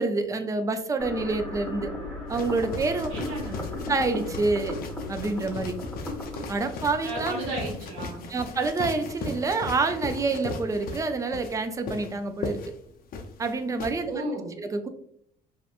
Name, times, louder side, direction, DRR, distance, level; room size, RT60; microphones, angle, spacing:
voice 1, 0.0-1.9 2.3-3.1 3.9-4.8 5.1-5.7 6.5-7.4 8.3-12.6 13.4-14.2 14.6-14.9, right 3 dB, 20° right, 7 dB, 0.3 m, -27 dB
sound 1, 1.0-8.0, left 2 dB, 5° left, 1.0 m, -37 dB
sound 2, 2.3-13.9, left 3 dB, 55° left, 0.5 m, -37 dB
voice 2, 3.1-3.6 7.0-8.2 14.1-14.6, right 1 dB, 90° right, -3 dB, 0.8 m, -33 dB
2.8 x 2.2 x 2.4 m, 0.68 s
supercardioid pair, 80°, 18 cm